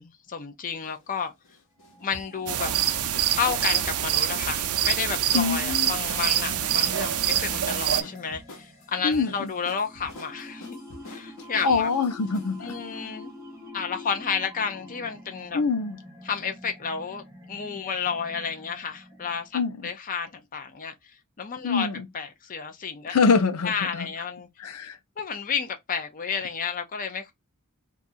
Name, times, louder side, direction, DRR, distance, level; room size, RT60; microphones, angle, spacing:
voice 1, 0.0-1.3 2.0-2.7 3.2-10.8 11.1-11.9 12.6-13.3 13.7-15.6 16.2-20.9 21.4-21.9 22.1-23.1 23.6-24.5 25.2-27.3, left 6 dB, 40° left, 0.5 m, -31 dB
sound 1, 0.8-12.8, left 1 dB, 60° left, 1.1 m, -47 dB
sound 2, 1.8-19.7, left 1 dB, 10° right, 1.0 m, -46 dB
sound 3, 2.5-8.0, right 11 dB, 75° right, 0.5 m, -25 dB
voice 2, 5.3-5.9 9.0-9.5 11.6-12.8 15.5-16.0 19.5-19.8 21.6-22.1 23.1-24.1 24.6-25.0, left 4 dB, 90° left, 0.6 m, -24 dB
2.6 x 2.4 x 4.0 m
head